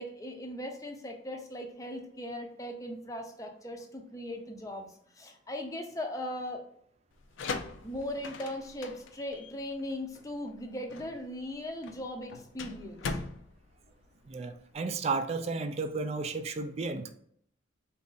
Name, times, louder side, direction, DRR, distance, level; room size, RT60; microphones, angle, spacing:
voice 1, 0.0-4.9 5.1-6.6 7.8-13.2, left 1 dB, 20° left, 3 dB, 0.5 m, -39 dB
sound 1, 7.1-14.7, left 4 dB, 85° left, 0.4 m, -41 dB
voice 2, 14.3-17.1, right 4 dB, 35° right, 9 dB, 0.3 m, -33 dB
4.0 x 2.6 x 3.8 m, 0.64 s
head